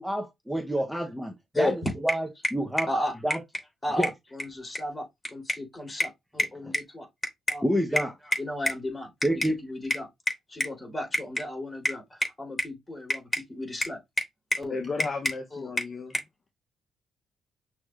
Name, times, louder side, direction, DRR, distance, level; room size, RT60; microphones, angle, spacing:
voice 1, 0.0-1.7 2.0-2.9 3.2-3.4 4.0-4.1 7.6-8.1 9.2-9.6, equal, 5° right, 0.8 m, -28 dB
voice 2, 1.5-1.9 2.9-3.1 3.8-7.1 7.5-7.6 7.9-8.1 8.4-9.1 9.4-14.0 14.5-14.7 15.5-15.6, left 1 dB, 20° left, 3.0 m, -31 dB
voice 3, 14.7-16.1, left 4 dB, 35° left, 0.7 m, -33 dB
6.0 x 3.1 x 2.4 m
cardioid pair, 90°, 0 cm